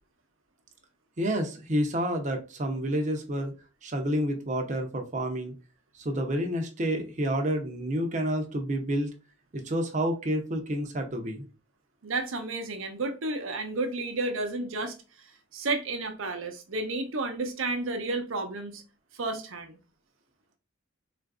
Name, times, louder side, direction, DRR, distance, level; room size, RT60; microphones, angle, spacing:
voice 1, 1.2-3.5 3.8-5.5 6.0-9.1 9.5-11.4, equal, 40° right, 0.6 m, -29 dB
voice 2, 12.0-18.8 19.1-19.8, right 2 dB, 80° right, 0.7 m, -32 dB
3.8 x 2.5 x 2.3 m
head